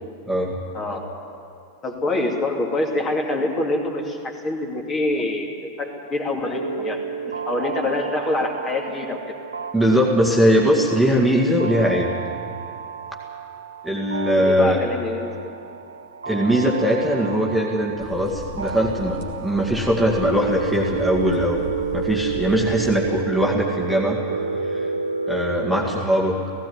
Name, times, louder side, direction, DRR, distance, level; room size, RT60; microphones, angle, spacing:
voice 1, 1.8-5.5 5.8-9.3 14.4-15.5 21.3-21.4, left 2 dB, 25° left, 2 dB, 2.6 m, -25 dB
sound 1, 6.5-26.0, right 5 dB, 75° right, 0.6 m, -31 dB
voice 2, 9.7-12.1 13.8-14.8 16.3-21.6 21.9-24.2 24.6-24.9 25.3-26.4, equal, ahead, -2 dB, 2.0 m, -20 dB
sound 2, 18.0-23.4, left 1 dB, 45° left, 2.6 m, -38 dB
17.0 x 16.5 x 9.5 m, 2.5 s
figure-of-eight pair, 90°, 0 cm